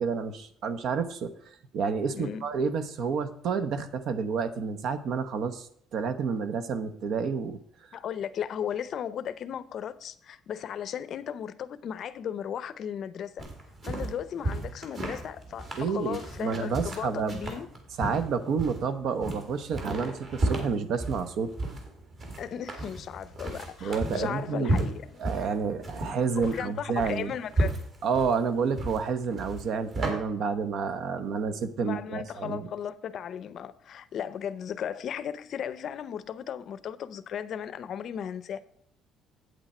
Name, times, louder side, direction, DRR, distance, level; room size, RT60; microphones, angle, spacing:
voice 1, 0.0-1.3 1.7-7.6 15.8-17.4 18.0-21.5 23.8-24.8 25.2-27.3 28.0-32.7, right 5 dB, 55° right, 0.9 m, -29 dB
voice 2, 7.9-13.4 13.8-17.7 22.4-25.2 26.4-27.7 31.8-38.6, left 8 dB, 45° left, 0.6 m, -36 dB
sound 1, 13.4-30.1, right 1 dB, 40° right, 2.5 m, -33 dB
8.8 x 8.1 x 4.3 m
cardioid pair, 155°, 0 cm